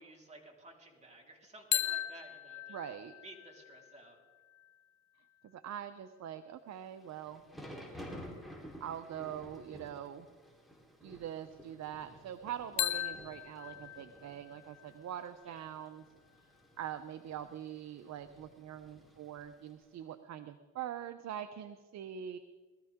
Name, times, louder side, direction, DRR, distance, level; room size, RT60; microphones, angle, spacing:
voice 1, 0.0-2.8 3.2-4.2 15.5-15.7, right 1 dB, 20° right, -1 dB, 4.2 m, -54 dB
sound 1, 1.7-5.6 12.8-16.6, left 12 dB, 65° left, 0.8 m, -40 dB
voice 2, 2.7-3.1 5.4-7.4 8.8-10.3 11.0-16.0 16.8-22.4, right 10 dB, 65° right, 9 dB, 0.8 m, -43 dB
Thunder / Rain, 6.8-19.9, equal, ahead, 3.8 m, -53 dB
20.5 x 14.0 x 3.7 m, 1.4 s
cardioid pair, 90°, 30 cm